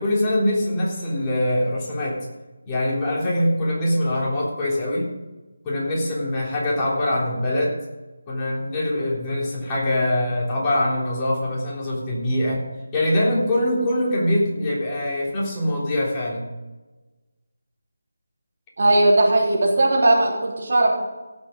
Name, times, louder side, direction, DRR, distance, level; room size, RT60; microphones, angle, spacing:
voice 1, 0.0-2.2 2.7-5.1 5.6-7.8 8.3-12.7 12.9-16.5, left 1 dB, 20° left, -5 dB, 3.5 m, -23 dB
voice 2, 18.8-20.9, right 1 dB, 50° right, -2 dB, 3.5 m, -18 dB
17.0 x 7.4 x 5.2 m, 1.2 s
figure-of-eight pair, 160°, 0 cm